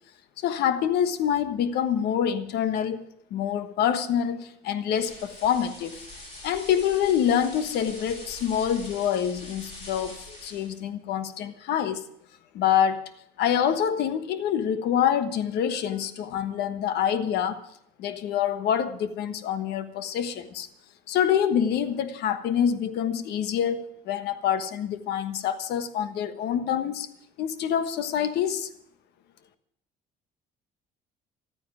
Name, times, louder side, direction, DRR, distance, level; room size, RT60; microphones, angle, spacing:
voice 1, 0.4-6.0 6.4-12.0 12.5-13.0 13.4-17.6 18.0-20.7 21.1-27.1 27.4-28.7, left 9 dB, 80° left, 1.3 m, -26 dB
sound 1, 4.9-10.8, left 1 dB, 40° left, 7.8 m, -44 dB
13.5 x 9.9 x 9.2 m
cardioid pair, 110°, 17 cm